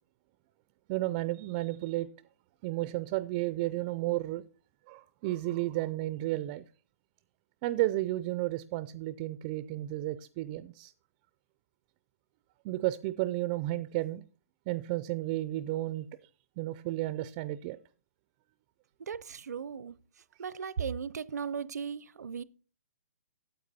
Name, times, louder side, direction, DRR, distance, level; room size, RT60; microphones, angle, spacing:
voice 1, 0.9-2.1 2.6-4.4 4.9-6.6 7.6-10.9 12.6-14.2 14.7-16.1 16.6-17.8, right 17 dB, 25° right, 0.3 m, -32 dB
voice 2, 19.0-20.0 20.4-22.4, right 7 dB, 80° right, 0.6 m, -37 dB
9.3 x 8.1 x 4.1 m
hypercardioid pair, 155°, 9 cm